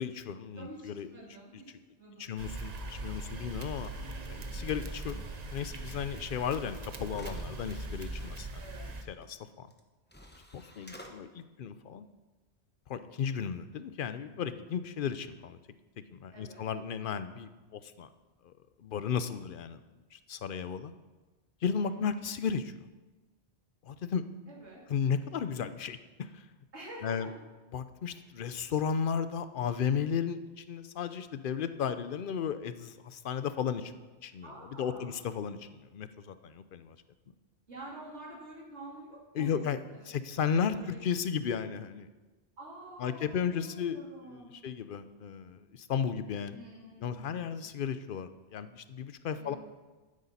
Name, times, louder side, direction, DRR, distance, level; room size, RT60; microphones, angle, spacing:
voice 1, 0.0-1.1 2.2-3.9 4.3-5.2 5.5-9.7 10.5-12.0 12.9-15.6 16.1-18.1 18.4-18.5 18.8-19.8 20.1-20.9 21.6-22.7 23.8-24.2 24.9-26.4 27.0-27.3 27.7-33.9 34.2-34.5 34.8-37.0 39.3-39.8 40.1-42.1 43.0-46.6 47.0-49.6, left 7 dB, 55° left, 12 dB, 0.7 m, -34 dB
voice 2, 0.6-1.7 2.0-2.3 8.6-8.9 16.3-16.6 21.9-22.0 24.5-24.8 26.7-27.4 28.1-28.3 34.4-35.2 37.7-40.3 40.7-41.0 42.6-44.6 46.5-47.5 49.3-49.6, right 2 dB, 80° right, -5 dB, 2.9 m, -48 dB
sound 1, 2.4-9.0, right 2 dB, 40° right, 0.9 m, -40 dB
sound 2, 7.1-8.3 9.7-9.8 10.1-11.1, left 1 dB, 10° left, 0.9 m, -51 dB
12.0 x 10.0 x 4.2 m, 1.2 s
omnidirectional pair, 1.1 m